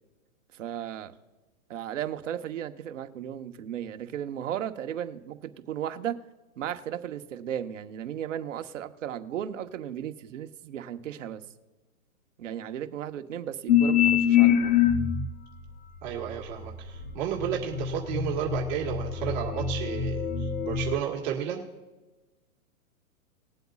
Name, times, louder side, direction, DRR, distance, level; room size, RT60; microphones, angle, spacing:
voice 1, 0.5-1.1 1.7-6.1 6.6-11.4 12.4-14.7, right 10 dB, 60° right, 7 dB, 1.1 m, -35 dB
sound 1, 13.7-15.3 16.1-21.0, left 9 dB, 35° left, 0.9 m, -25 dB
voice 2, 16.0-21.6, right 10 dB, 30° right, -2 dB, 1.9 m, -32 dB
20.5 x 7.9 x 2.4 m, 1.2 s
hypercardioid pair, 155°, 42 cm